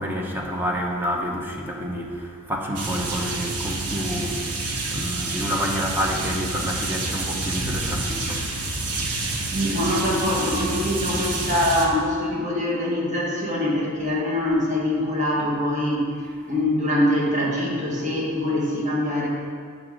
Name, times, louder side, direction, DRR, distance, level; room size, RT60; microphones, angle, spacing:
voice 1, 0.0-9.7, equal, 10° right, -1 dB, 0.9 m, -29 dB
sound 1, 2.8-11.9, right 2 dB, 90° right, 1.1 m, -28 dB
voice 2, 9.5-16.1 16.5-19.3, left 1 dB, 35° right, -4 dB, 1.9 m, -23 dB
9.6 x 7.2 x 4.0 m, 2.1 s
head